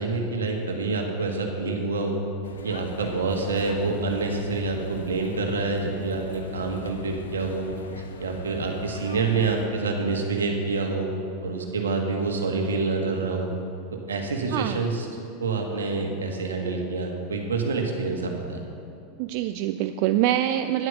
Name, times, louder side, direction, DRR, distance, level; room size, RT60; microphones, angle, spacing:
voice 1, 0.0-2.2 2.6-7.7 8.2-11.1 11.4-13.5 13.9-15.1 15.4-18.6, right 3 dB, 85° right, 2 dB, 1.5 m, -27 dB
sound 1, 2.4-9.7, left 5 dB, 85° left, 0.8 m, -42 dB
voice 2, 14.5-14.9 19.2-20.9, right 12 dB, 55° right, 9 dB, 0.4 m, -25 dB
10.5 x 7.8 x 6.8 m, 2.7 s
hypercardioid pair, 95°, 0 cm